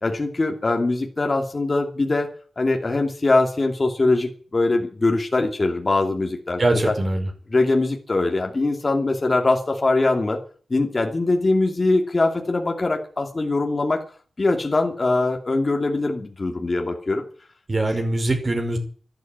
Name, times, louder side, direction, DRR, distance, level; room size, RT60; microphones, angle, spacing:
voice 1, 0.0-2.3 2.6-6.6 6.8-6.9 7.5-10.4 10.7-14.0 14.4-17.2, left 2 dB, 30° left, 2 dB, 2.7 m, -22 dB
voice 2, 6.6-7.3 17.7-18.8, right 2 dB, 35° right, 4 dB, 5.3 m, -22 dB
12.5 x 12.5 x 9.3 m, 0.43 s
wide cardioid pair, 120°, 0 cm